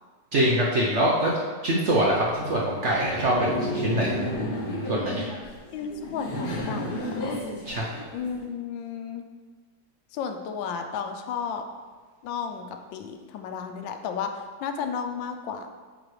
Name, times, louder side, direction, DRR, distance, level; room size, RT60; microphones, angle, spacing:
voice 1, 0.3-1.4 1.6-4.2 4.9-5.3 7.7-7.9, right 1 dB, 55° right, -4 dB, 0.8 m, -24 dB
Laughter, 2.2-8.4, equal, 45° left, 0.7 m, -32 dB
voice 2, 5.7-7.4 8.1-9.3 10.1-11.6 12.2-15.7, left 6 dB, 90° left, 6 dB, 1.3 m, -33 dB
8.8 x 3.8 x 3.2 m, 1.4 s
omnidirectional pair, 2.0 m